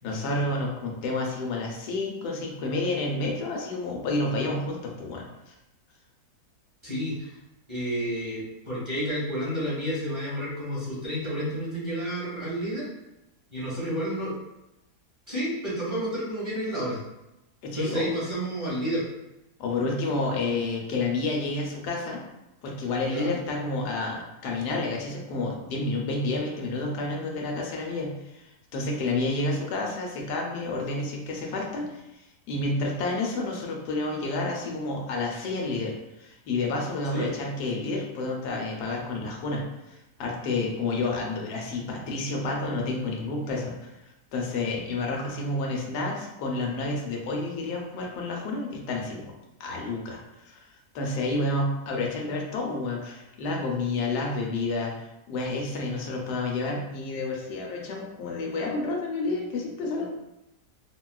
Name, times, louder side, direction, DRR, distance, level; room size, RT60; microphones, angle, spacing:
voice 1, 0.0-5.5 17.6-18.0 19.6-22.2 22.6-32.0 32.5-43.9 44.3-49.3 49.6-50.2 50.5-50.7 50.9-54.9 55.3-60.1, left 2 dB, 85° left, -1 dB, 1.2 m, -30 dB
voice 2, 6.8-7.3 7.7-12.9 13.5-14.3 15.3-17.0 17.7-19.0 23.1-23.3 32.5-32.6 37.1-37.3, equal, 20° right, -10 dB, 1.0 m, -30 dB
3.5 x 2.2 x 2.3 m, 0.94 s
omnidirectional pair, 1.7 m